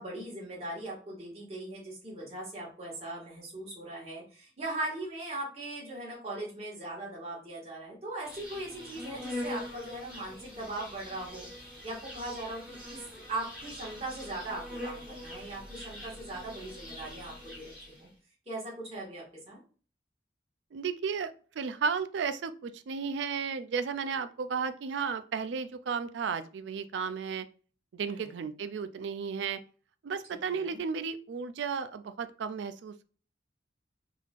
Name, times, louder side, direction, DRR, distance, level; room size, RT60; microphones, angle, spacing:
voice 1, 0.0-13.0 13.3-17.7 18.0-18.1 18.4-19.6 28.0-28.4 30.3-30.8, right 2 dB, 35° right, -4 dB, 1.7 m, -39 dB
Insect, 8.2-18.1, left 1 dB, 5° right, 1.3 m, -43 dB
voice 2, 20.7-27.5 27.9-29.6 30.0-33.0, right 6 dB, 75° right, 11 dB, 0.4 m, -34 dB
3.7 x 3.2 x 2.4 m, 0.39 s
head